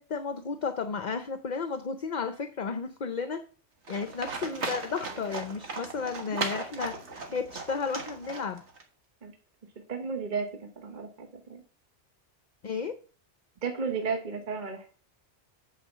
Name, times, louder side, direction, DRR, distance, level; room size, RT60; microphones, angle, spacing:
voice 1, 0.0-3.4 3.9-7.0 7.3-8.6 12.6-13.0, left 5 dB, 45° left, 10 dB, 0.7 m, -33 dB
Livestock farm animals working animals, 3.9-8.8, right 3 dB, 70° right, 1.8 m, -37 dB
voice 2, 9.9-11.6 13.6-14.9, right 5 dB, 45° right, 5 dB, 1.1 m, -33 dB
8.4 x 5.0 x 7.2 m, 0.42 s
omnidirectional pair, 1.2 m